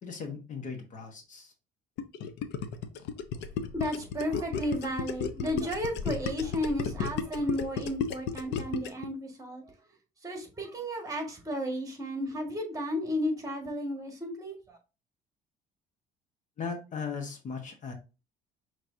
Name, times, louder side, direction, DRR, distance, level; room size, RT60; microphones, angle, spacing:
voice 1, 0.0-1.5 16.6-17.9, left 5 dB, 45° left, 1.1 m, -38 dB
Gurgling, 2.0-9.1, left 6 dB, 75° left, 0.7 m, -33 dB
voice 2, 3.7-9.6 10.2-14.8, equal, 20° right, 1.7 m, -33 dB
5.9 x 3.2 x 2.6 m
cardioid pair, 120°, 18 cm